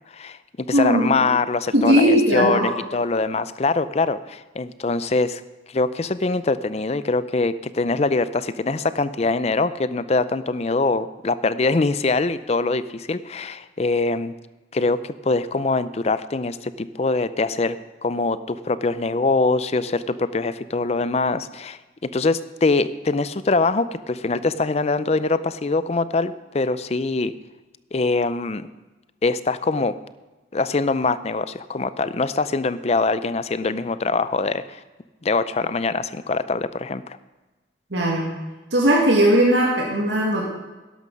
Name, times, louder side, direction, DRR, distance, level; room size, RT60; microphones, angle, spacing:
voice 1, 0.0-5.4 5.7-14.3 14.7-27.3 27.9-28.7 29.2-30.0 30.5-34.8 35.2-37.2, left 3 dB, 35° left, 14 dB, 0.5 m, -23 dB
voice 2, 0.7-1.4 1.7-2.7 37.9-38.3 38.7-40.4, right 1 dB, 75° right, -2 dB, 2.0 m, -18 dB
12.5 x 11.5 x 5.3 m, 1.2 s
head